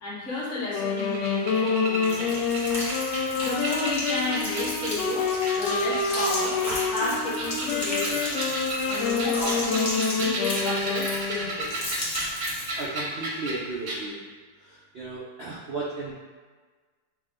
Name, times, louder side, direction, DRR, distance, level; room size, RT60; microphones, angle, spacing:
voice 1, 0.0-2.5 3.2-8.4 8.9-11.7, left 3 dB, 45° left, -7 dB, 1.5 m, -32 dB
Wind instrument woodwind instrument, 0.7-11.6, left 5 dB, 75° left, 1.2 m, -28 dB
sound 1, 0.8-5.0 5.5-6.9 7.3-13.6 13.9-14.0, right 2 dB, 55° right, 0.9 m, -33 dB
sound 2, 2.0-12.9, left 1 dB, 30° left, 1.0 m, -34 dB
voice 2, 12.8-14.2 14.6-16.1, right 3 dB, 80° right, -6 dB, 0.5 m, -35 dB
6.0 x 2.2 x 3.6 m, 1.4 s
omnidirectional pair, 1.9 m